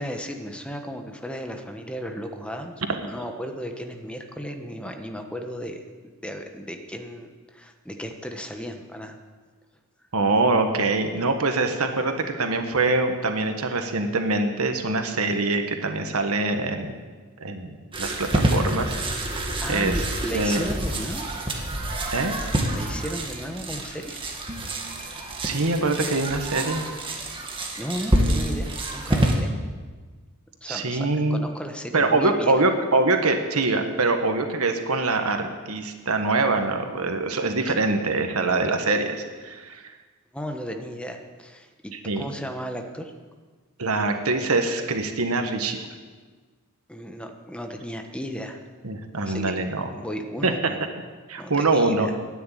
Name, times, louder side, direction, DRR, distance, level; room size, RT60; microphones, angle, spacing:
voice 1, 0.0-9.2 19.6-21.2 22.7-24.2 27.8-29.5 30.6-32.6 40.3-43.1 46.9-48.6 49.2-49.6 49.9-50.8 51.4-52.1, equal, 5° left, 4 dB, 1.2 m, -35 dB
voice 2, 10.1-17.0 17.4-19.0 19.7-20.0 20.3-20.6 22.1-22.4 25.4-26.9 30.7-31.5 31.9-39.9 41.9-42.3 43.8-45.8 48.8-49.9 50.4-50.5 51.3-52.1, right 3 dB, 80° right, 6 dB, 1.4 m, -24 dB
sound 1, 17.9-29.3, right 1 dB, 25° right, 1.8 m, -27 dB
12.5 x 9.6 x 9.1 m, 1.4 s
head